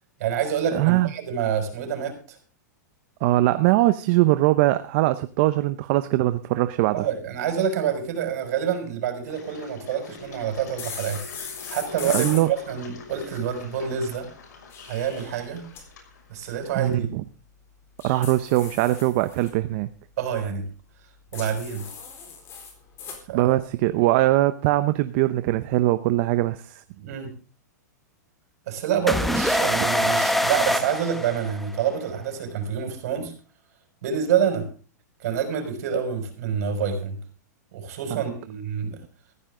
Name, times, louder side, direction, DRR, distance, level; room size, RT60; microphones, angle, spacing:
voice 1, 0.2-2.4 6.9-11.2 11.7-14.3 14.9-15.6 16.3-17.1 20.2-20.6 21.3-21.8 23.3-23.4 27.0-27.3 28.7-33.3 34.0-34.7 35.2-37.2 37.7-39.0, right 8 dB, 60° right, 6 dB, 6.0 m, -27 dB
voice 2, 0.7-1.1 3.2-7.1 12.0-12.5 16.8-17.2 18.0-19.9 23.3-26.8 38.1-38.2, right 16 dB, 45° right, 11 dB, 0.8 m, -21 dB
Engine, 9.3-17.0, left 5 dB, 75° left, 6.0 m, -45 dB
sound 1, 10.8-12.4 14.5-15.8 18.0-19.5 21.3-23.2, left 6 dB, 25° left, 4.3 m, -37 dB
sound 2, 29.1-31.9, equal, ahead, 1.1 m, -24 dB
15.5 x 14.5 x 3.8 m, 0.38 s
hypercardioid pair, 150°, 10 cm